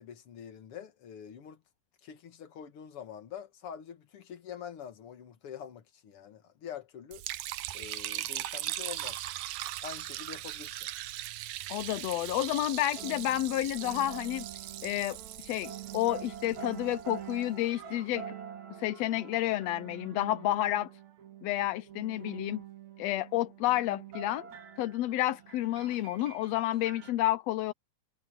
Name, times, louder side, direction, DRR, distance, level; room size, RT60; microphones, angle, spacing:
voice 1, 0.0-1.6 2.0-7.3 7.7-9.3 9.8-10.9, left 8 dB, 55° left, 2.3 m, -45 dB
Liquid, 7.1-17.3, right 15 dB, 80° right, 2.3 m, -39 dB
voice 2, 11.7-14.4 14.8-15.2 15.4-18.2 18.8-20.9 21.4-22.6 23.0-24.5 24.8-27.7, left 15 dB, 75° left, 1.6 m, -30 dB
sound 1, 13.0-27.1, right 8 dB, 65° right, 3.5 m, -46 dB
omnidirectional pair, 3.5 m